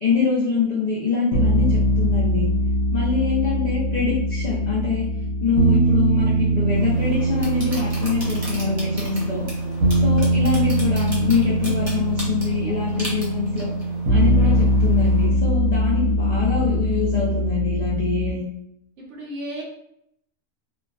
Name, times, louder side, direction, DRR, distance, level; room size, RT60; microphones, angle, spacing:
voice 1, 0.0-2.5 2.9-5.0 5.4-9.4 10.0-13.7 14.1-18.4, left 5 dB, 60° left, -7 dB, 0.4 m, -24 dB
sound 1, 1.3-18.3, right 1 dB, 90° right, 1.0 m, -22 dB
sound 2, 6.7-15.3, equal, 40° right, 0.7 m, -38 dB
voice 2, 10.0-10.6 19.0-19.6, right 1 dB, 65° right, -2 dB, 0.8 m, -35 dB
2.3 x 2.3 x 2.2 m, 0.77 s
omnidirectional pair, 1.4 m